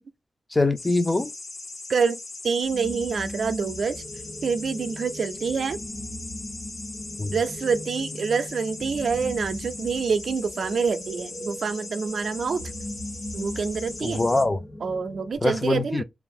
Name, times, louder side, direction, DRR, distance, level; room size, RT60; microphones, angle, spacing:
voice 1, 0.5-1.3 7.2-7.4 14.0-14.6 15.4-16.0, left 2 dB, 25° left, 0.3 m, -23 dB
sound 1, 0.8-14.4, left 3 dB, 80° left, 0.9 m, -40 dB
voice 2, 1.9-4.0 4.4-5.8 7.3-12.6 13.3-14.2 14.8-16.0, right 5 dB, 80° right, 0.4 m, -26 dB
sound 2, 2.6-15.3, left 1 dB, 55° left, 1.0 m, -39 dB
2.7 x 2.4 x 3.4 m
wide cardioid pair, 150°, 0 cm